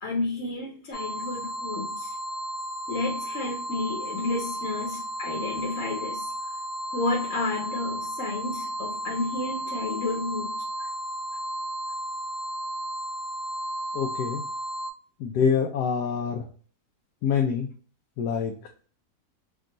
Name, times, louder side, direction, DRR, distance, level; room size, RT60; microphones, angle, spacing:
voice 1, 0.0-2.1 2.9-6.3 6.9-10.5, left 3 dB, 55° left, 1.1 m, -31 dB
sound 1, 0.9-14.9, equal, 30° left, 0.9 m, -34 dB
voice 2, 13.9-14.4 15.2-16.5 17.2-17.7 18.2-18.5, left 6 dB, 80° left, 1.2 m, -25 dB
3.5 x 2.3 x 3.8 m
omnidirectional pair, 1.8 m